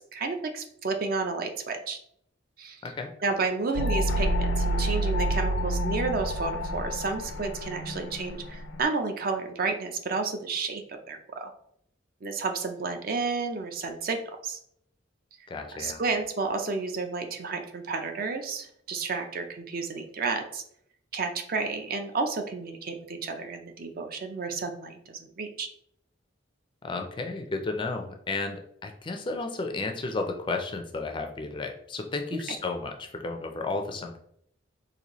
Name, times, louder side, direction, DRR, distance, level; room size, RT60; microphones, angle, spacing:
voice 1, 0.0-2.0 2.6-2.8 3.2-11.5 12.2-14.6 15.7-20.6 21.1-25.7 32.3-32.4, right 4 dB, 50° right, 5 dB, 0.4 m, -31 dB
sound 1, 3.8-8.8, equal, 80° left, 0.5 m, -28 dB
voice 2, 15.5-16.0 26.8-34.2, left 3 dB, 25° left, 4 dB, 0.4 m, -33 dB
4.0 x 2.6 x 2.9 m, 0.70 s
head